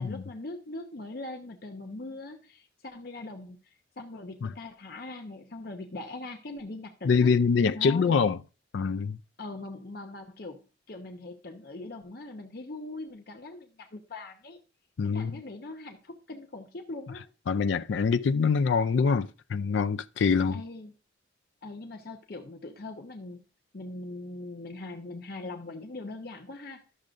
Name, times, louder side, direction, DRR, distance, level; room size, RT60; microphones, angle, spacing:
voice 1, 0.0-7.3 7.7-8.3 9.4-14.6 15.0-17.3 20.5-20.9 21.6-23.4 23.7-26.8, left 2 dB, 50° left, 0.7 m, -41 dB
voice 2, 7.0-8.4 8.7-9.2 15.0-15.4 17.5-20.6, left 5 dB, 70° left, 0.4 m, -25 dB
12.0 x 6.4 x 2.5 m
head